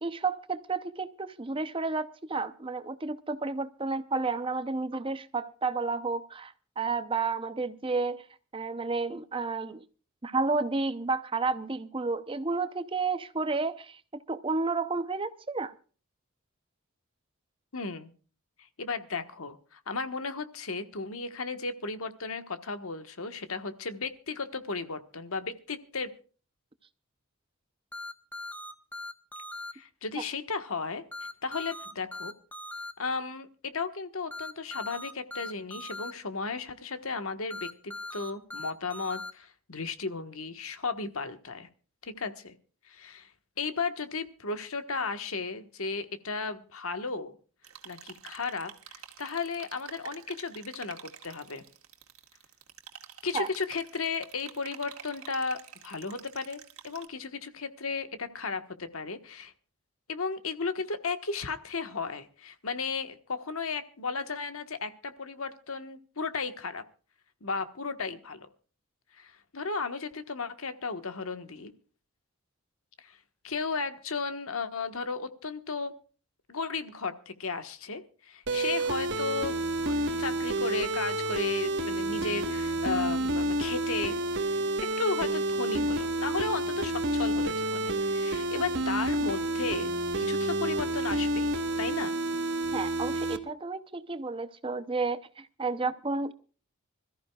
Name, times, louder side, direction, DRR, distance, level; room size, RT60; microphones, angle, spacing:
voice 1, 0.0-8.3 8.5-9.8 10.2-15.7 53.3-53.5 92.7-96.3, right 3 dB, 25° right, 0.7 m, -31 dB
voice 2, 17.7-18.1 18.8-26.1 29.7-31.0 31.4-32.3 33.0-41.7 42.0-42.6 42.8-43.3 43.6-47.4 47.8-51.0 51.2-51.6 53.2-59.5 60.1-66.8 67.4-68.5 69.1-71.7 73.0-73.2 73.4-75.9 76.5-84.2 85.0-92.1, left 4 dB, 70° left, 1.4 m, -35 dB
sound 1, 27.9-29.7 31.1-32.9 34.3-36.1 37.5-39.3, left 1 dB, 5° left, 1.3 m, -40 dB
sound 2, 47.6-57.0, right 8 dB, 70° right, 2.1 m, -49 dB
sound 3, 78.5-93.4, right 1 dB, 55° right, 1.4 m, -29 dB
25.5 x 14.0 x 2.4 m
head